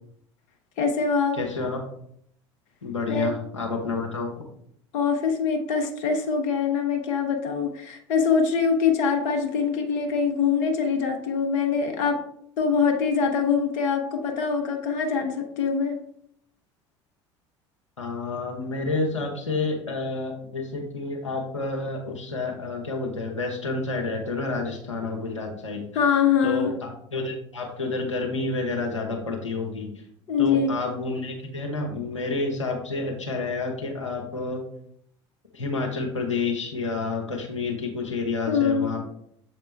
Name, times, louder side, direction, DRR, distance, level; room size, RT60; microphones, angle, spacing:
voice 1, 0.8-1.4 3.1-3.3 4.9-12.2 12.6-16.0 25.9-26.7 30.3-30.7 38.5-38.9, left 6 dB, 55° left, 4 dB, 0.9 m, -23 dB
voice 2, 1.4-1.9 2.8-4.3 18.0-25.9 26.4-30.0 30.4-34.6 35.5-39.1, left 3 dB, 90° left, 0 dB, 0.9 m, -29 dB
7.2 x 4.3 x 3.2 m, 0.68 s
figure-of-eight pair, 70°, 15 cm